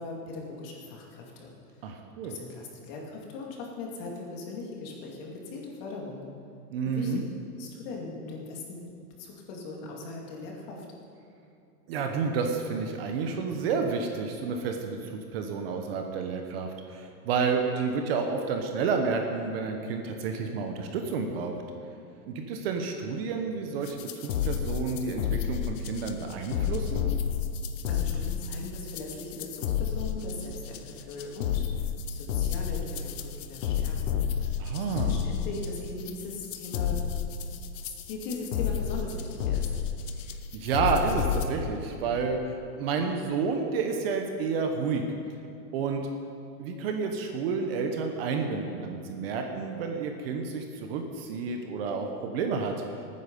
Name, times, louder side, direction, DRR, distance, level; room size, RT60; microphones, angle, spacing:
voice 1, 0.0-1.8 2.2-6.2 6.8-7.2 7.6-8.8 9.2-10.9 27.9-31.6 32.0-37.0 37.8-39.7, left 3 dB, 35° left, -1 dB, 2.4 m, -39 dB
voice 2, 1.8-2.3 6.7-7.2 11.9-21.6 22.3-27.1 34.6-35.2 40.5-45.0 45.7-46.1 46.6-52.8, right 5 dB, 40° right, 4 dB, 1.0 m, -30 dB
sound 1, 23.8-41.5, left 8 dB, 50° left, 0.9 m, -31 dB
18.0 x 9.6 x 5.4 m, 2.6 s
supercardioid pair, 170°, 47 cm